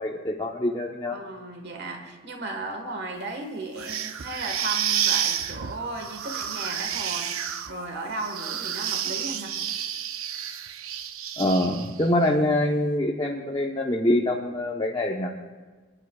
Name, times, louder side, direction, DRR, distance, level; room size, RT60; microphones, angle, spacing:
voice 1, 0.0-1.2 11.4-15.3, left 1 dB, 20° left, 0 dB, 0.8 m, -25 dB
voice 2, 1.1-7.4 7.7-9.5, right 2 dB, 50° right, 3 dB, 1.4 m, -35 dB
sound 1, 3.8-12.1, right 9 dB, 75° right, 0.6 m, -30 dB
24.5 x 11.0 x 2.3 m, 1.4 s
head